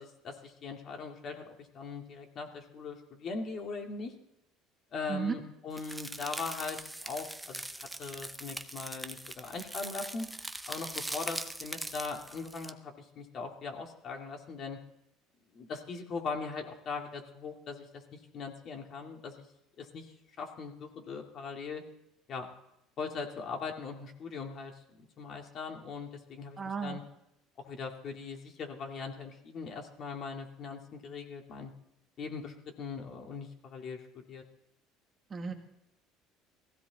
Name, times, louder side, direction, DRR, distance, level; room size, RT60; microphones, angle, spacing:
voice 1, 0.0-4.1 4.9-7.6 8.0-10.3 10.7-14.8 15.5-19.5 19.8-20.1 20.4-21.8 22.3-22.5 23.0-24.7 25.2-27.0 27.6-31.7 32.2-34.4, left 4 dB, 45° left, 2 dB, 2.4 m, -40 dB
sound 1, 5.8-12.7, right 1 dB, 5° right, 0.7 m, -41 dB
voice 2, 26.6-27.0 35.3-35.5, right 5 dB, 25° right, 4 dB, 1.6 m, -34 dB
18.5 x 15.5 x 4.1 m, 0.81 s
cardioid pair, 130°, 0 cm